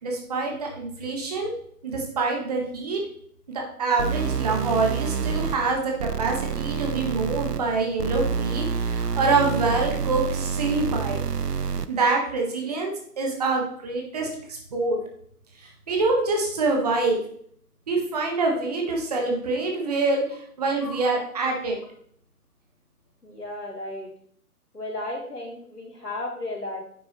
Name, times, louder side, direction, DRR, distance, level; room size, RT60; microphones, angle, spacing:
voice 1, 0.0-1.5 1.8-3.0 3.5-11.2 11.9-15.0 15.6-17.2 17.9-21.7, right 3 dB, 25° right, 1 dB, 1.4 m, -26 dB
sound 1, 4.0-12.0, right 6 dB, 85° right, 0.7 m, -28 dB
voice 2, 23.2-24.1 24.7-26.8, left 2 dB, 80° left, -4 dB, 3.8 m, -34 dB
9.7 x 6.9 x 3.1 m, 0.63 s
figure-of-eight pair, 140°, 46 cm